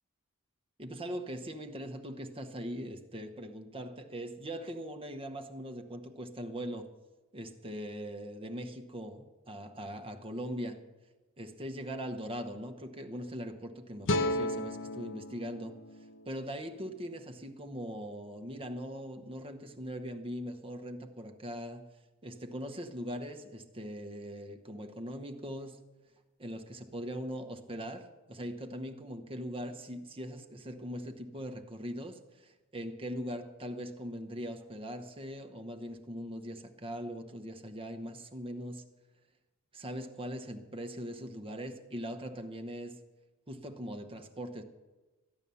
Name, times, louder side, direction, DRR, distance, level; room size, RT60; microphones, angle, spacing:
voice 1, 0.8-6.9 7.3-10.8 11.4-15.8 16.3-21.8 22.2-25.8 26.4-38.9 39.7-43.0 43.5-44.6, equal, 25° right, 0.9 m, -41 dB
sound 1, 14.1-17.3, left 1 dB, 55° left, 0.8 m, -35 dB
14.0 x 9.0 x 6.9 m
head